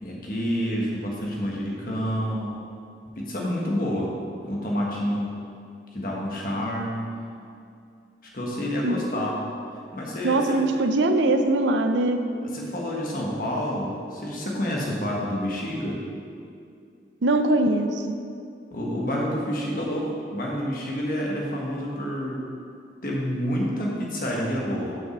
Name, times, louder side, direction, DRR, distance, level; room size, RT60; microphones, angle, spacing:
voice 1, 0.0-2.6 3.1-4.1 4.4-5.3 5.9-7.0 8.3-9.4 9.9-10.6 12.5-16.0 18.7-22.5 23.0-24.9, equal, 50° left, -3 dB, 1.5 m, -28 dB
voice 2, 10.2-12.2 17.2-18.2, right 2 dB, 85° right, 7 dB, 0.6 m, -22 dB
6.4 x 5.4 x 6.5 m, 2.4 s
head